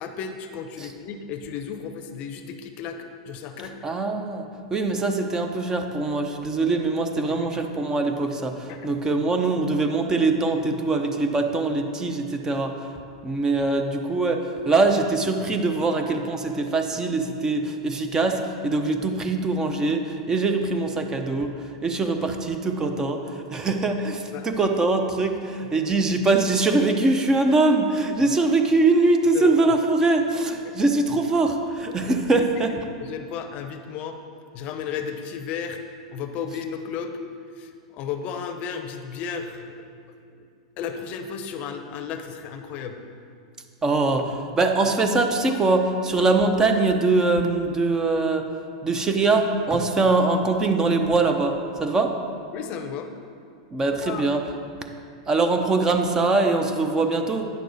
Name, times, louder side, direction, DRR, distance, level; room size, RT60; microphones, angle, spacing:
voice 1, 0.0-3.8 7.3-7.6 8.7-8.9 24.3-24.5 29.3-29.5 30.6-30.7 32.4-32.5 33.0-34.2 34.5-35.8 36.1-37.1 37.6-39.7 40.4-40.5 40.8-43.0 52.5-53.1 54.0-54.3, left 7 dB, 40° left, 7 dB, 0.7 m, -34 dB
voice 2, 3.8-4.4 4.7-12.9 13.2-21.5 21.8-32.7 43.8-48.5 48.8-52.1 53.7-54.4 55.3-57.5, right 3 dB, 20° right, 5 dB, 0.7 m, -22 dB
9.3 x 6.5 x 4.0 m, 2.4 s
hypercardioid pair, 130°, 3 cm